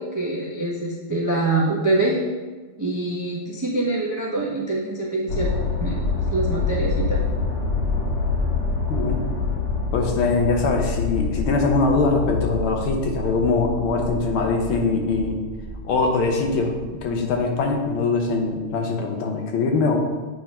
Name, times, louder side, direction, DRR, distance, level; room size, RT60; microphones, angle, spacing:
voice 1, 0.0-2.2 2.8-5.5 5.8-6.0 6.3-7.2, right 2 dB, 30° right, -4 dB, 0.3 m, -24 dB
sound 1, 5.3-18.0 18.5-18.6, left 4 dB, 50° left, 0.9 m, -26 dB
voice 2, 8.9-9.3 9.9-15.4 15.8-20.0, left 3 dB, 85° left, 2 dB, 1.7 m, -22 dB
8.4 x 3.6 x 4.2 m, 1.3 s
omnidirectional pair, 2.2 m